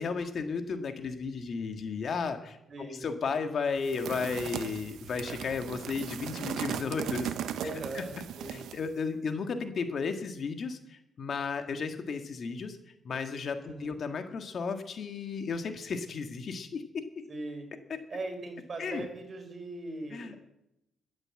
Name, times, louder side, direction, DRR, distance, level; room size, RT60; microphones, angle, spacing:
voice 1, 0.0-7.3 7.9-8.0 8.5-12.8 13.0-17.0 17.9-18.0 18.8-19.0 20.1-20.3, left 5 dB, 55° left, 7 dB, 1.6 m, -34 dB
voice 2, 2.7-3.0 7.5-8.6 13.6-14.0 17.3-17.7 18.1-20.4, right 2 dB, 40° right, 5 dB, 4.3 m, -40 dB
sound 1, 3.8-8.9, right 9 dB, 80° right, 0.9 m, -37 dB
12.5 x 9.6 x 7.7 m, 0.82 s
cardioid pair, 90°, 0 cm